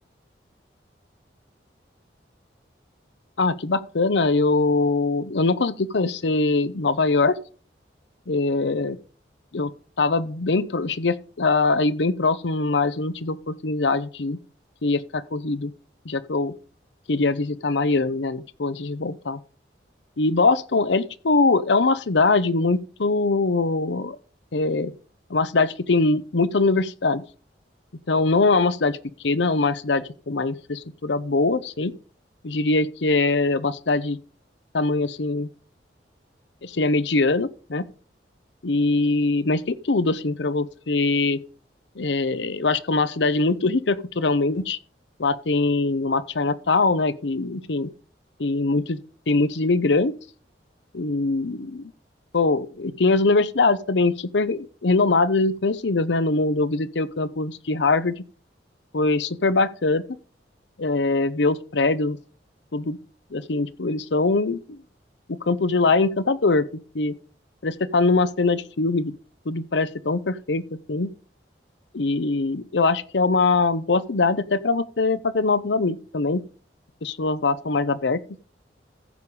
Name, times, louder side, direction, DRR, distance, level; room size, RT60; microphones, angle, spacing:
voice 1, 3.4-7.4 8.3-9.0 9.5-9.7 10.0-14.4 14.8-15.7 16.0-16.5 17.1-19.4 20.2-24.2 24.5-24.9 25.3-27.2 28.1-29.0 29.2-32.0 32.4-34.2 34.7-35.5 36.6-37.9 38.6-41.4 42.0-44.8 45.2-47.9 48.4-49.0 49.3-50.1 50.9-51.9 52.3-58.2 58.9-60.0 60.8-62.2 62.7-63.0 63.3-64.8 65.4-66.7 66.9-67.1 67.6-69.1 69.5-70.6 70.9-71.1 71.9-76.4 77.0-78.2, left 3 dB, 80° left, 0.7 m, -22 dB
14.5 x 5.0 x 5.3 m
head